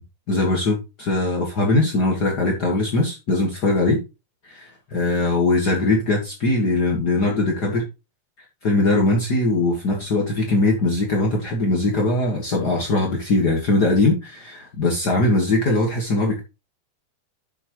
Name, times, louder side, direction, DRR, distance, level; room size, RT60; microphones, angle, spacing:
voice 1, 0.3-4.0 4.4-7.8 8.6-16.4, left 2 dB, 70° left, -1 dB, 0.9 m, -21 dB
10.0 x 6.9 x 3.1 m, 0.27 s
omnidirectional pair, 4.8 m